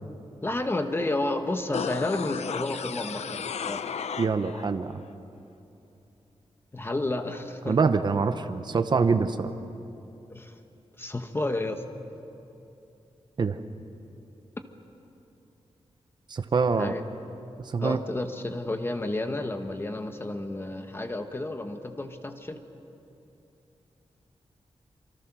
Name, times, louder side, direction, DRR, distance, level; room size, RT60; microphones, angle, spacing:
voice 1, 0.4-3.8 6.7-7.8 10.3-10.5 11.0-11.8 16.8-17.0 17.8-22.6, left 2 dB, 20° left, 6 dB, 1.2 m, -31 dB
sound 1, 1.7-4.7 5.0-5.1, left 7 dB, 80° left, 0.7 m, -34 dB
voice 2, 4.2-5.0 7.7-9.5 13.4-13.6 16.3-16.9 17.7-18.0, right 4 dB, 40° right, 9 dB, 0.8 m, -25 dB
26.5 x 24.5 x 6.1 m, 2.8 s
wide cardioid pair, 165°, 11 cm